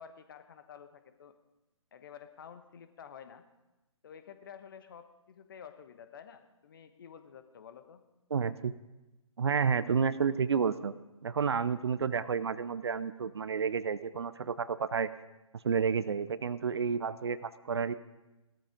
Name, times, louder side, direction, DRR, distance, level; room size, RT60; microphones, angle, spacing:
voice 1, 0.0-1.4 1.9-3.4 4.0-8.0, left 7 dB, 40° left, 10 dB, 1.2 m, -50 dB
voice 2, 8.3-8.7 9.4-10.9 11.2-15.1 15.6-17.9, right 6 dB, 50° right, 16 dB, 0.6 m, -30 dB
16.5 x 13.0 x 5.1 m, 1.0 s
figure-of-eight pair, 135°, 17 cm